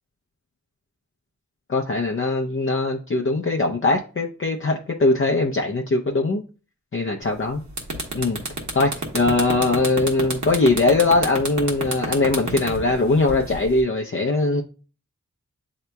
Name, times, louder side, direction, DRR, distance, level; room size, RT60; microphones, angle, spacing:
voice 1, 1.7-6.4 6.9-7.6 8.1-8.4 8.7-14.6, left 3 dB, 45° left, 1 dB, 0.6 m, -21 dB
sound 1, 7.3-7.4 7.7-13.8, right 2 dB, 75° right, 1.2 m, -28 dB
7.8 x 2.8 x 2.2 m, 0.36 s
cardioid pair, 45°, 29 cm